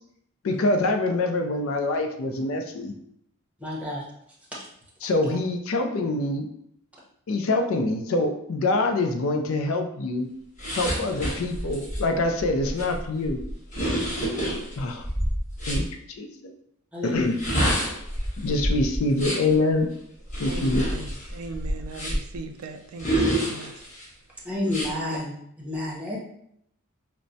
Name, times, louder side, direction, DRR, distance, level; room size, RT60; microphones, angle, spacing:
voice 1, 0.4-2.9 5.0-6.5 7.3-10.3 10.7-13.4 14.8-15.1 15.7-15.9 16.2-16.5 17.0-17.3 18.4-19.9 20.4-20.8, left 2 dB, 65° left, 0.4 m, -25 dB
voice 2, 3.6-4.0 4.5-4.6 16.9-17.3 20.5-20.7 24.4-26.2, left 1 dB, 5° right, 0.8 m, -30 dB
sound 1, 10.6-15.9 17.2-19.5 20.3-22.4 23.0-24.0 24.7-24.9, equal, 35° left, 1.2 m, -28 dB
voice 3, 20.4-23.9, right 3 dB, 80° right, 0.4 m, -39 dB
4.4 x 2.0 x 2.6 m
head